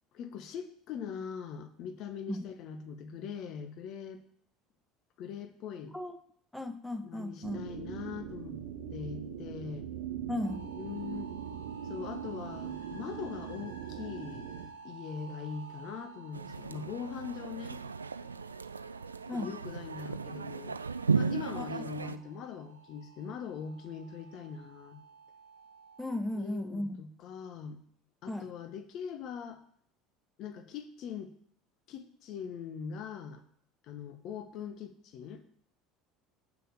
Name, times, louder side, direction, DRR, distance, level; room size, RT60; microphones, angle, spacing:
voice 1, 0.1-4.2 5.2-6.0 7.0-8.6 8.9-9.9 10.7-11.3 11.8-14.5 14.8-17.8 19.3-20.8 21.1-25.0 26.3-27.8 28.2-29.6 30.4-31.3 31.9-33.4 33.8-35.4, left 7 dB, 50° left, 8 dB, 1.2 m, -42 dB
voice 2, 6.5-7.6 10.3-10.7 19.3-19.5 21.5-21.6 26.0-27.0 28.3-28.5, left 1 dB, ahead, 8 dB, 1.1 m, -35 dB
sound 1, 7.4-14.7, right 8 dB, 60° right, 0.8 m, -41 dB
sound 2, 10.4-26.2, right 5 dB, 85° left, 1.5 m, -52 dB
sound 3, 16.3-22.2, right 5 dB, 80° right, 0.3 m, -35 dB
6.6 x 6.4 x 6.9 m, 0.63 s
figure-of-eight pair, 65°, 0 cm